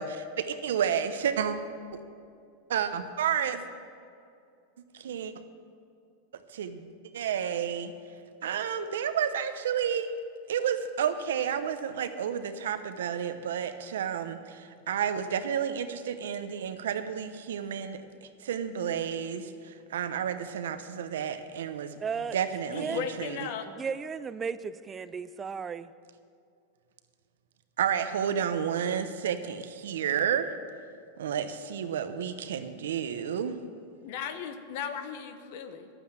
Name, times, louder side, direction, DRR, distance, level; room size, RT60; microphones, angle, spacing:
voice 1, 0.0-1.6 1.9-2.0 2.7-3.7 4.9-5.3 6.5-7.9 8.4-10.1 10.5-22.0 22.3-23.5 27.8-30.5 31.2-33.6, right 8 dB, 85° right, 10 dB, 0.9 m, -31 dB
voice 2, 22.0-22.4 22.8-23.0 23.7-25.9, right 6 dB, 20° right, 15 dB, 0.4 m, -35 dB
voice 3, 22.7-23.7 34.0-35.9, left 8 dB, 60° left, 9 dB, 1.1 m, -36 dB
11.5 x 9.1 x 7.5 m, 2.4 s
supercardioid pair, 130°, 0 cm